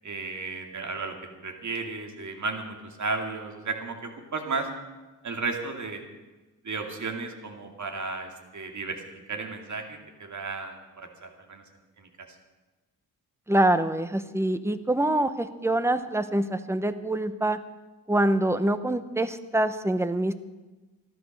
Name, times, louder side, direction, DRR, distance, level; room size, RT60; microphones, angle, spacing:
voice 1, 0.0-1.2 1.4-4.7 5.2-6.0 6.6-9.0 9.3-11.6 12.0-12.1, right 3 dB, 50° right, 3 dB, 2.5 m, -34 dB
voice 2, 13.5-17.6 18.1-20.3, right 1 dB, 5° right, 11 dB, 0.9 m, -25 dB
14.0 x 12.5 x 6.5 m, 1.2 s
wide cardioid pair, 100°, 37 cm